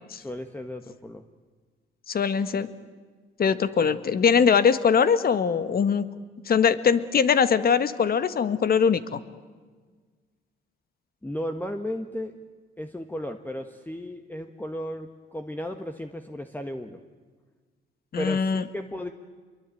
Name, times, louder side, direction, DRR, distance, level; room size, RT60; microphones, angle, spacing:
voice 1, 0.2-1.3 11.2-12.3 12.8-17.0 18.2-19.1, equal, 10° left, 6 dB, 1.4 m, -34 dB
voice 2, 2.1-2.7 3.4-6.1 6.5-9.2 18.1-18.6, left 6 dB, 50° left, 13 dB, 1.5 m, -22 dB
26.5 x 22.5 x 9.2 m, 1.5 s
cardioid pair, 90°, 20 cm